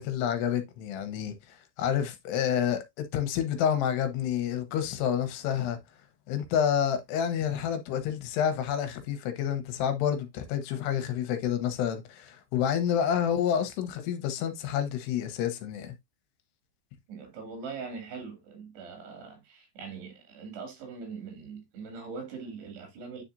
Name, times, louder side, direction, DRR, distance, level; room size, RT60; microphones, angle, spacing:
voice 1, 0.0-5.8 6.3-15.9, left 9 dB, 80° left, 3.1 m, -29 dB
voice 2, 17.1-23.2, right 5 dB, 80° right, 4.6 m, -41 dB
9.8 x 4.2 x 2.6 m
omnidirectional pair, 4.7 m